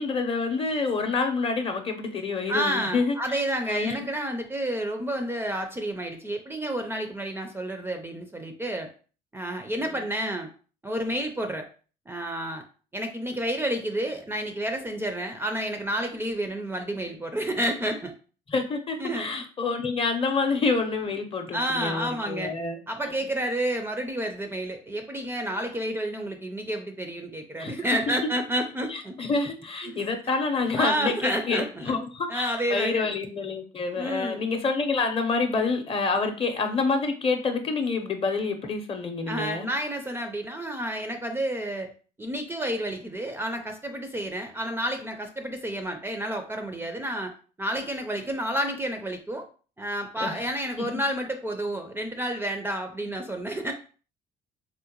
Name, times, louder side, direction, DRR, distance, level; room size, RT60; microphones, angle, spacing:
voice 1, 0.0-3.4 3.7-4.1 9.9-10.0 18.5-22.8 27.6-27.7 28.9-39.7 50.2-50.4 50.8-50.9, left 4 dB, 35° left, 6 dB, 0.6 m, -27 dB
voice 2, 2.5-8.9 9.3-10.5 10.8-11.7 12.1-12.6 12.9-18.1 19.0-19.4 21.5-22.5 22.9-29.2 29.8-30.0 30.7-32.0 32.3-33.1 33.9-34.4 39.3-41.9 42.2-47.3 47.6-49.5 49.8-53.7, right 1 dB, 15° right, 5 dB, 0.4 m, -30 dB
3.6 x 2.1 x 2.9 m, 0.38 s
cardioid pair, 110°, 17 cm